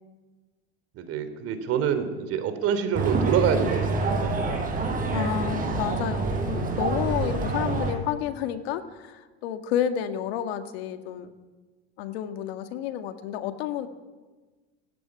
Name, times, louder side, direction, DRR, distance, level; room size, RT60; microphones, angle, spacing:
voice 1, 0.9-4.3, right 8 dB, 50° right, 10 dB, 3.3 m, -26 dB
sound 1, 2.9-7.9, right 3 dB, 25° right, 5.1 m, -27 dB
voice 2, 5.1-11.3 12.0-13.9, left 10 dB, 75° left, 8 dB, 1.9 m, -30 dB
20.0 x 14.5 x 9.8 m, 1.3 s
supercardioid pair, 115°, 31 cm